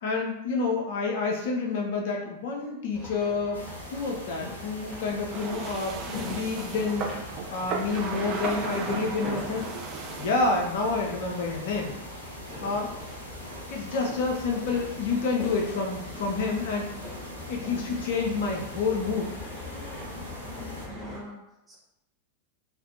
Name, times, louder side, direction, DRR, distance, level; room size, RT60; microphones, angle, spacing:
voice 1, 0.0-7.1 7.5-9.7 10.2-11.9 12.6-12.9 13.7-16.9 17.5-19.3, left 4 dB, 55° left, 1 dB, 0.4 m, -28 dB
sound 1, 2.9-21.2, left 2 dB, 5° left, 1.0 m, -41 dB
sound 2, 3.5-20.9, equal, 90° right, 0.5 m, -43 dB
sound 3, 5.3-10.3, right 5 dB, 35° right, 0.4 m, -35 dB
voice 2, 20.8-21.8, equal, 15° right, -4 dB, 0.7 m, -46 dB
2.4 x 2.1 x 2.6 m, 0.86 s
figure-of-eight pair, 90°, 0 cm